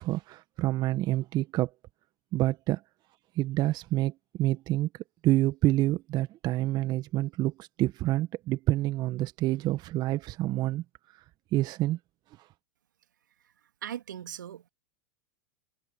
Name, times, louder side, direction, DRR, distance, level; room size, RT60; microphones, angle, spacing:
voice 1, 0.0-1.7 2.3-2.8 3.4-4.9 5.2-10.8 11.5-12.0, right 16 dB, 40° right, 1.8 m, -27 dB
voice 2, 13.8-14.7, right 10 dB, 75° right, 2.5 m, -39 dB
hypercardioid pair, 90°, 10 cm